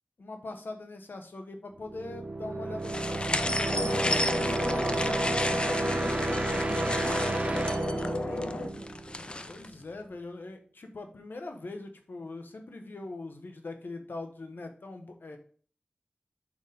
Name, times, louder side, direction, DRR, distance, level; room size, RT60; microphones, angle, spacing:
voice 1, 0.2-5.3 6.2-6.6 9.4-15.4, left 2 dB, 85° left, 5 dB, 1.2 m, -42 dB
sound 1, 1.8-9.5, right 3 dB, 35° right, 0.6 m, -32 dB
sound 2, 2.8-9.7, left 1 dB, 30° left, 0.6 m, -33 dB
sound 3, 3.7-8.7, left 2 dB, 55° left, 1.2 m, -33 dB
voice 2, 5.9-9.0, right 1 dB, 55° right, -1 dB, 2.5 m, -48 dB
7.8 x 5.2 x 3.6 m, 0.43 s
wide cardioid pair, 80°, 3 cm